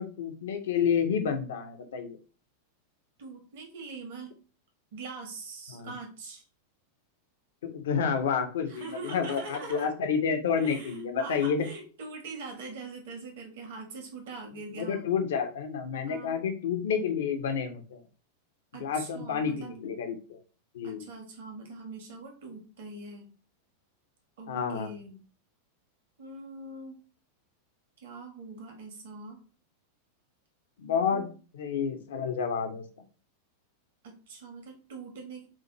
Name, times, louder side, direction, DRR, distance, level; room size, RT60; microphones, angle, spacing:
voice 1, 0.0-2.2 5.7-5.9 7.7-11.7 14.8-18.0 18.8-20.4 20.7-21.0 24.5-24.9 30.8-31.3 31.5-32.8, left 6 dB, 60° left, 6 dB, 0.8 m, -29 dB
voice 2, 3.2-4.3 4.9-6.4 8.7-9.9 10.5-15.1 16.1-16.4 18.7-19.7 20.8-23.3 24.4-25.1 26.2-27.0 28.0-29.4 31.1-31.3 34.0-35.5, right 3 dB, 55° right, 3 dB, 1.3 m, -42 dB
7.2 x 2.5 x 2.9 m, 0.37 s
figure-of-eight pair, 90°, 0 cm